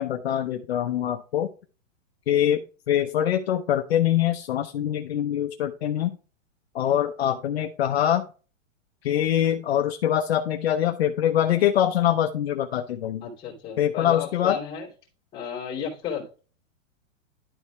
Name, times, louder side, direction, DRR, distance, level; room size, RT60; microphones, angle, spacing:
voice 1, 0.0-1.5 2.3-6.2 6.7-8.2 9.0-13.3 13.8-14.6, left 11 dB, 50° left, 4 dB, 0.8 m, -24 dB
voice 2, 13.2-14.9 15.3-16.3, left 7 dB, 10° left, -3 dB, 2.8 m, -33 dB
12.0 x 4.2 x 3.3 m, 0.35 s
hypercardioid pair, 170°, 39 cm